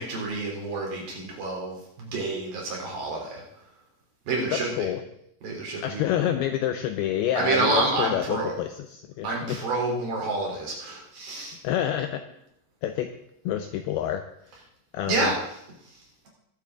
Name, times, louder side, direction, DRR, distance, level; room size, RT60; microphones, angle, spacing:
voice 1, 0.0-3.4 4.3-4.9 5.4-6.0 7.4-8.5 9.2-11.6 15.1-15.3, right 3 dB, 55° right, -2 dB, 4.9 m, -28 dB
voice 2, 4.5-5.0 5.8-9.7 11.6-12.2 12.8-13.1 13.5-14.2 14.9-15.4, left 11 dB, 80° left, 7 dB, 2.3 m, -28 dB
20.5 x 8.6 x 3.8 m, 0.74 s
omnidirectional pair, 5.1 m